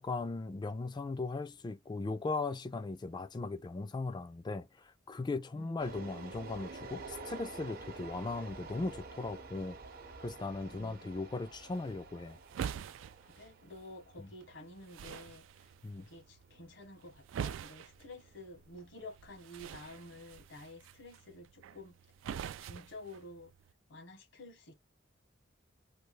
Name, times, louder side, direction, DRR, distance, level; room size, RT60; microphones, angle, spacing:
voice 1, 0.0-9.8 10.2-12.4 14.2-14.3 15.8-16.1, left 3 dB, 25° left, 0.3 m, -38 dB
sound 1, 5.8-18.9, right 3 dB, 50° right, 0.7 m, -50 dB
voice 2, 10.7-11.1 13.2-15.4 16.0-21.9 22.6-23.5 23.9-24.7, left 2 dB, 85° left, 1.1 m, -51 dB
sound 2, 11.7-23.7, right 8 dB, 80° right, 0.3 m, -46 dB
3.2 x 2.3 x 3.1 m
head